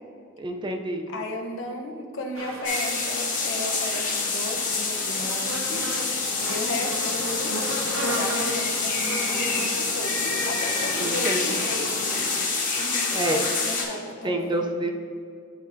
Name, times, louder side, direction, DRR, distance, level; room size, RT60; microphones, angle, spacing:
voice 1, 0.4-1.1 11.0-11.6 13.1-13.4 14.2-14.9, right 1 dB, 25° right, 4 dB, 0.5 m, -28 dB
voice 2, 1.1-5.9 6.4-7.6 8.1-12.3 12.7-14.6, left 1 dB, 70° left, 1 dB, 0.8 m, -35 dB
sound 1, 2.3-12.4, right 1 dB, 85° right, 0.7 m, -35 dB
sound 2, 2.6-13.8, left 4 dB, 40° left, 1.3 m, -27 dB
10.5 x 4.1 x 2.7 m, 2.3 s
head